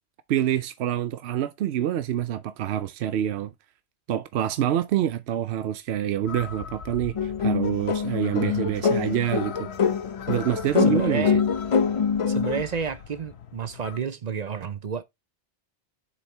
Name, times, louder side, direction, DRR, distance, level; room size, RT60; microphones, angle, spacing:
voice 1, 0.3-3.5 4.1-9.7 10.3-11.3, right 11 dB, 80° right, 0.9 m, -26 dB
sound 1, 6.3-14.0, left 6 dB, 80° left, 1.1 m, -42 dB
sound 2, 7.2-12.6, left 6 dB, 50° left, 0.4 m, -24 dB
voice 2, 8.3-8.8 10.9-11.4 12.3-15.0, right 6 dB, 50° right, 0.6 m, -31 dB
7.2 x 4.5 x 3.3 m
omnidirectional pair, 1.1 m